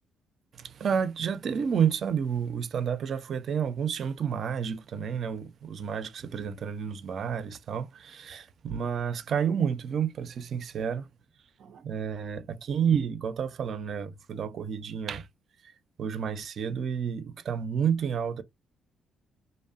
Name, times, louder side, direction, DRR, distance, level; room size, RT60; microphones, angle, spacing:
voice 1, 0.5-11.1 11.6-15.3 15.6-15.7 16.0-18.4, right 7 dB, 55° right, 0.3 m, -30 dB
2.5 x 2.1 x 2.3 m
hypercardioid pair, 45°, 0 cm